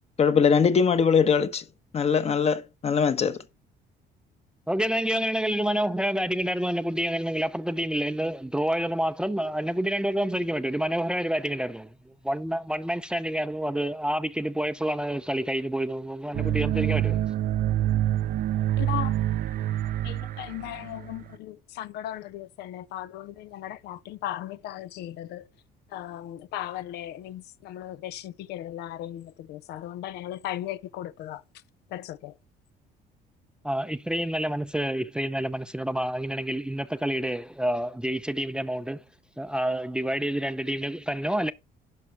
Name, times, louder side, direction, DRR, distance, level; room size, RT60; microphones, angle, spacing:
voice 1, 0.2-1.6 1.9-3.4, left 6 dB, 40° left, 1.1 m, -21 dB
voice 2, 4.7-17.2 33.6-39.0 39.4-41.5, right 1 dB, 5° right, 0.5 m, -28 dB
sound 1, 16.3-21.2, right 12 dB, 55° right, 0.5 m, -26 dB
voice 3, 18.8-19.1 20.0-25.4 25.9-31.4 31.9-32.3, left 13 dB, 80° left, 0.6 m, -37 dB
11.0 x 5.5 x 4.5 m
cardioid pair, 110°, 17 cm